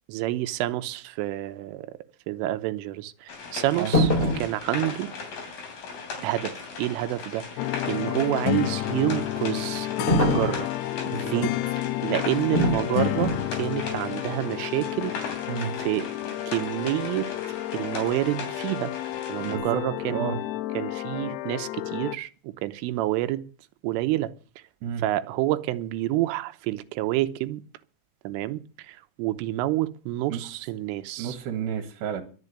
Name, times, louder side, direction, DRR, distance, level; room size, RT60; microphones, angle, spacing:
voice 1, 0.1-2.0 2.3-5.1 6.2-7.6 7.9-10.7 11.2-11.5 12.0-15.1 15.8-16.1 16.5-17.3 17.7-18.9 19.3-20.2 20.7-23.5 23.8-24.3 25.0-27.6 28.2-31.4, right 15 dB, 85° right, 3.4 m, -28 dB
sound 1, 3.3-19.6, left 5 dB, 50° left, 4.3 m, -38 dB
sound 2, 3.9-4.5 10.1-10.6 12.5-12.8 13.2-13.5, equal, 15° left, 2.6 m, -22 dB
sound 3, 7.6-22.2, left 16 dB, 85° left, 2.3 m, -31 dB
voice 2, 11.0-11.4 15.5-15.7 19.4-19.8 20.1-20.4 24.8-25.0 30.3-30.4 31.2-32.2, right 7 dB, 65° right, 3.4 m, -31 dB
12.0 x 7.5 x 9.7 m
omnidirectional pair, 5.7 m